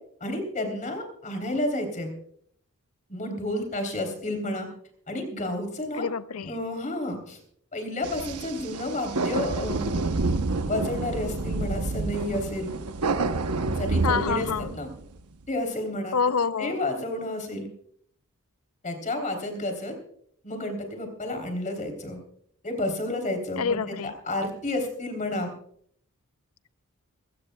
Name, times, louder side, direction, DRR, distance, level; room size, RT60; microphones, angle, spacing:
voice 1, 0.2-2.1 3.1-4.7 5.1-6.1 6.4-7.4 7.7-10.0 10.6-12.7 13.7-14.5 14.7-14.9 15.5-16.2 16.6-17.7 18.8-20.0 20.4-22.2 22.6-23.8 24.0-25.5, left 1 dB, 35° left, 3.4 m, -30 dB
voice 2, 5.9-6.5 14.0-14.8 16.1-16.8 23.6-24.1, left 5 dB, 70° left, 0.6 m, -27 dB
sound 1, 8.0-15.2, right 3 dB, 90° right, 0.9 m, -28 dB
21.5 x 17.0 x 2.3 m
head